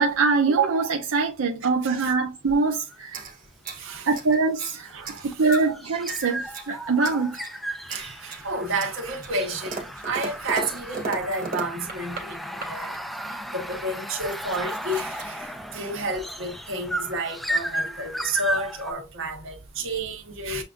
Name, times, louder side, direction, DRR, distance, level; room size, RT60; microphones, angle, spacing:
voice 1, 0.0-3.2 4.1-5.0 5.2-7.4, right 4 dB, 85° right, 0.7 m, -23 dB
voice 2, 1.8-2.1 3.8-4.1 4.9-5.5 6.1-6.2 7.9-12.9 13.3-20.6, right 2 dB, 70° right, 1.4 m, -31 dB
sound 1, 2.7-3.0 4.1-18.9, equal, ahead, 0.3 m, -34 dB
sound 2, 3.1-4.8 5.0-5.7 6.1-6.7 7.0-7.6 7.9-8.5 8.8-12.3 12.6-13.0 13.7-13.8 14.1-15.3, right 4 dB, 40° right, 1.6 m, -37 dB
7.3 x 2.5 x 2.5 m
head